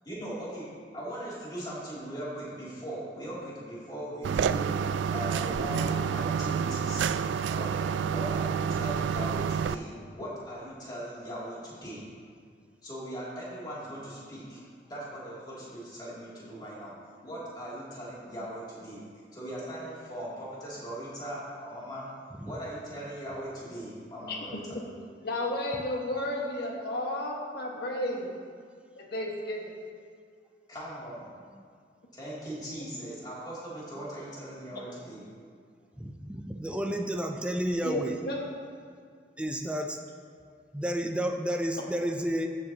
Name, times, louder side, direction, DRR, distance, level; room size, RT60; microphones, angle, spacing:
voice 1, 0.0-0.7 0.9-12.1 12.8-14.6 14.9-19.0 19.3-22.1 22.4-24.6 30.7-31.3 32.1-35.2, right 1 dB, 25° left, -8 dB, 2.7 m, -39 dB
sound 1, 4.2-9.8, right 7 dB, 80° right, 0.3 m, -29 dB
voice 2, 25.2-28.3 29.0-29.6 37.8-38.0 38.3-38.5, left 1 dB, 60° left, -1 dB, 1.5 m, -32 dB
voice 3, 36.0-38.2 39.4-40.0 40.7-42.5, equal, 5° right, 3 dB, 0.5 m, -31 dB
14.5 x 7.7 x 2.9 m, 2.1 s
head